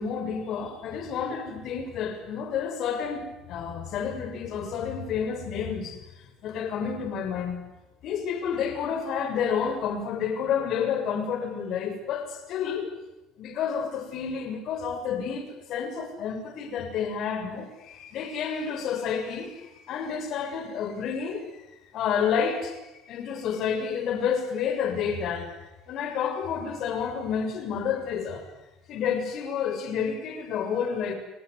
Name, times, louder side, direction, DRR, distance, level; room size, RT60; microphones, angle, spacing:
voice 1, 0.0-7.6 8.0-12.9 13.4-21.7 21.9-25.6 25.9-28.5 28.9-31.1, left 7 dB, 60° left, 7 dB, 7.1 m, -30 dB
29.0 x 20.5 x 9.7 m, 0.99 s
supercardioid pair, 105°, 0 cm